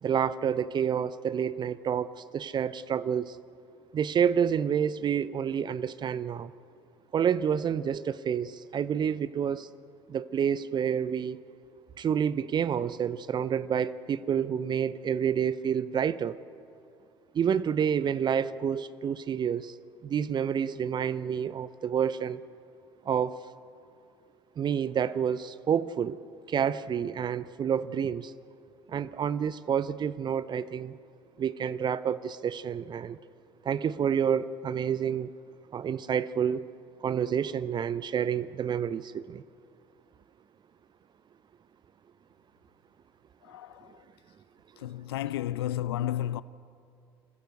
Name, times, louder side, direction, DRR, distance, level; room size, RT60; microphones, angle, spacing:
voice 1, 0.0-3.4 3.9-6.5 7.1-9.7 10.1-11.4 12.0-16.4 17.3-19.7 20.0-22.4 23.1-23.4 24.6-26.2 26.5-28.3 28.9-31.0 31.4-33.2 33.6-35.3 35.7-36.6 37.0-39.4, right 8 dB, 35° right, 0.6 m, -29 dB
voice 2, 43.4-44.0 44.8-46.4, left 12 dB, 75° left, 0.5 m, -32 dB
25.0 x 15.5 x 8.1 m
figure-of-eight pair, 60°, 13 cm